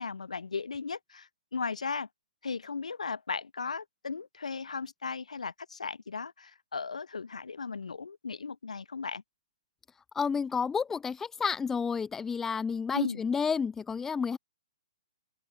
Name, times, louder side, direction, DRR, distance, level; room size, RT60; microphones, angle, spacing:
voice 1, 0.0-2.1 2.4-9.2 12.9-13.2, left 5 dB, 65° left, 0.9 m, -36 dB
voice 2, 10.1-14.4, left 6 dB, 10° left, 0.7 m, -30 dB
open air
figure-of-eight pair, 120°, 4 cm